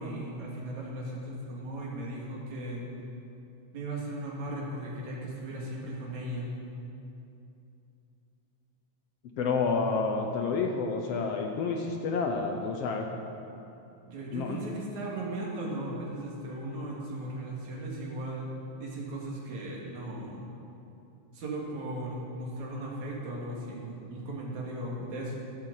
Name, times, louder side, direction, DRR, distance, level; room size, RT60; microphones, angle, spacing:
voice 1, 0.0-2.8 3.7-6.5 14.1-18.5 18.8-20.5 21.3-25.4, right 1 dB, 75° right, -3 dB, 3.5 m, -37 dB
voice 2, 9.4-13.1 14.3-14.6, left 4 dB, 65° left, 3 dB, 1.7 m, -29 dB
15.0 x 13.5 x 4.1 m, 2.7 s
omnidirectional pair, 3.3 m